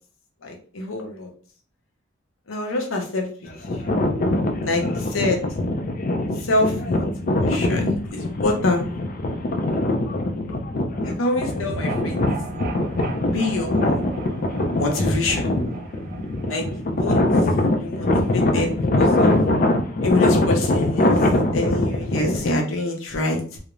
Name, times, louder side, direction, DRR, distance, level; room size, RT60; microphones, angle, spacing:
voice 1, 0.4-1.3 2.5-3.3 3.7-3.9 4.6-5.4 6.4-7.0 7.4-8.8 11.0-12.2 13.3-14.1 14.8-15.5 16.5-16.7 17.0-17.2 17.8-18.1 18.3-19.3 20.0-21.2 21.5-23.6, left 2 dB, 90° left, 2 dB, 0.7 m, -25 dB
sound 1, 3.5-22.5, left 1 dB, 45° left, 0.4 m, -22 dB
sound 2, 11.5-17.6, right 4 dB, 45° right, 0.3 m, -38 dB
2.4 x 2.0 x 3.0 m, 0.44 s
head